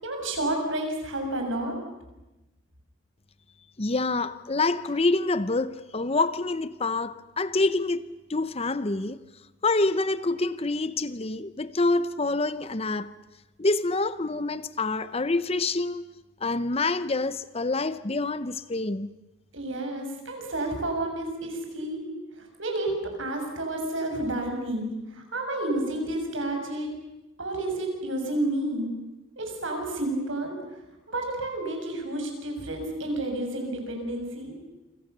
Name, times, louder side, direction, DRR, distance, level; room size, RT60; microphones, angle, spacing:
voice 1, 0.0-1.8 19.5-22.0 22.4-26.9 27.4-28.9 29.4-30.5 31.1-34.6, right 1 dB, 80° right, 6.9 m, -30 dB
voice 2, 3.8-8.0 8.3-9.2 9.6-13.2 13.6-16.1 16.4-19.1, left 3 dB, 30° left, 0.8 m, -26 dB
28.5 x 25.5 x 6.8 m
head